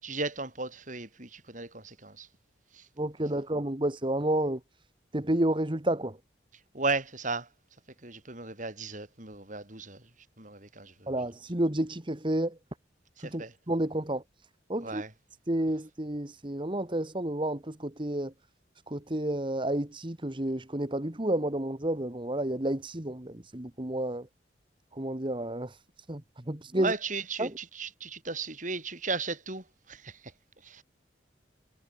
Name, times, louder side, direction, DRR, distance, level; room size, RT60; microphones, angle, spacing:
voice 1, 0.0-2.3 2.7-2.9 6.7-7.5 8.0-10.1 10.4-11.1 13.2-13.5 14.8-15.1 26.7-30.2 30.6-30.8, right 3 dB, 45° right, 7.6 m, -35 dB
voice 2, 3.0-4.6 5.1-6.2 11.1-12.6 13.2-14.2 14.7-15.0 15.5-18.3 18.9-24.3 24.9-25.8 26.1-26.2 26.5-26.9 27.4-27.5, right 1 dB, 25° right, 1.6 m, -30 dB
head